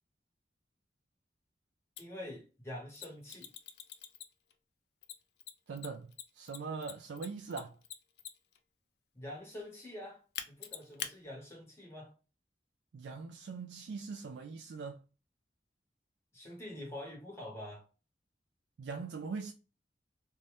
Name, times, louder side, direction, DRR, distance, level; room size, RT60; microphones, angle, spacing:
Mechanisms, 2.0-2.1 2.9-4.5 5.0-8.6 10.3-11.1, left 9 dB, 70° left, 0.4 m, -43 dB
voice 1, 2.0-3.5 9.1-12.1 16.3-17.8, left 1 dB, 15° left, 1.0 m, -46 dB
voice 2, 5.7-7.8 12.9-15.0 18.8-19.5, right 4 dB, 85° right, 0.3 m, -41 dB
2.7 x 2.2 x 3.2 m
head